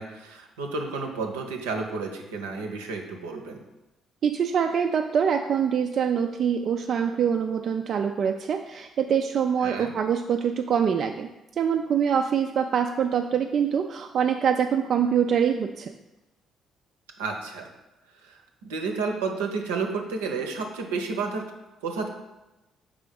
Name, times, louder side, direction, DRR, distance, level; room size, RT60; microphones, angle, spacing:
voice 1, 0.0-3.6 9.6-9.9 17.2-17.7 18.2-21.5 21.8-22.1, right 4 dB, 85° right, 3 dB, 0.7 m, -31 dB
voice 2, 4.2-11.3 11.6-15.9, right 7 dB, 55° right, 4 dB, 0.3 m, -24 dB
4.9 x 3.7 x 5.2 m, 1.0 s
hypercardioid pair, 45°, 0 cm